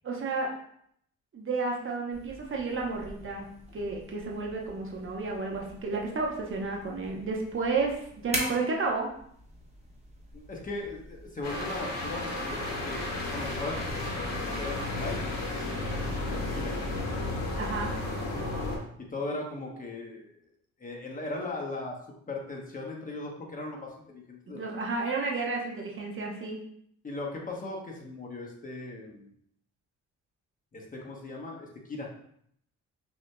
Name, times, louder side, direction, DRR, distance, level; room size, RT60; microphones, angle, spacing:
voice 1, 0.0-0.5 1.3-3.5 3.7-9.1 17.6-17.9 24.5-26.6, right 3 dB, 45° right, -1 dB, 0.9 m, -31 dB
sound 1, 2.1-14.0, right 1 dB, 20° right, 1.0 m, -43 dB
voice 2, 10.3-15.2 16.3-16.8 18.3-18.5 19.0-20.3 20.8-22.0 22.3-24.9 27.0-29.3 30.7-32.1, left 2 dB, 25° left, -1 dB, 1.0 m, -38 dB
sound 2, 11.4-18.8, left 2 dB, 60° left, 1.4 m, -33 dB
6.0 x 2.7 x 2.2 m, 0.68 s
cardioid pair, 90°, 30 cm